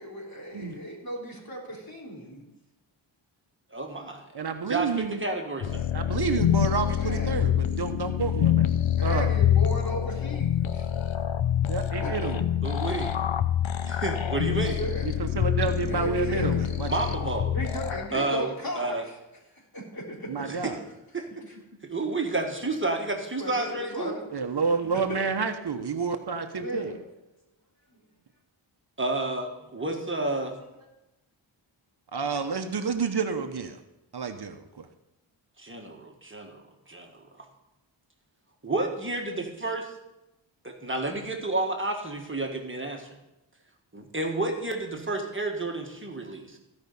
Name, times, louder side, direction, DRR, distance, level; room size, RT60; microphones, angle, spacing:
voice 1, 0.0-2.4 6.9-7.4 9.0-10.9 12.0-12.3 14.1-15.1 15.9-16.5 17.5-18.9 19.7-20.5 21.5-21.6 23.4-24.3 25.1-25.2 26.4-27.0 30.7-30.9, equal, 45° left, -2 dB, 3.4 m, -36 dB
voice 2, 3.7-4.3 4.7-5.9 12.6-13.1 13.8-14.8 16.9-17.5 18.1-18.5 18.7-19.1 20.4-20.8 21.1-21.5 21.8-24.1 29.0-30.5 35.6-37.1 37.4-37.5 38.6-39.9 40.6-43.1 43.9-46.6, right 2 dB, 25° right, 2 dB, 1.6 m, -30 dB
voice 3, 4.3-5.2 5.9-8.7 9.0-9.4 11.7-12.4 15.0-16.9 20.3-20.8 24.3-26.9 32.1-33.8 34.1-34.9, right 5 dB, 55° right, 7 dB, 1.0 m, -29 dB
sound 1, 5.6-18.1, left 10 dB, 70° left, 0.8 m, -26 dB
15.5 x 5.4 x 5.3 m, 0.96 s
wide cardioid pair, 70°, 47 cm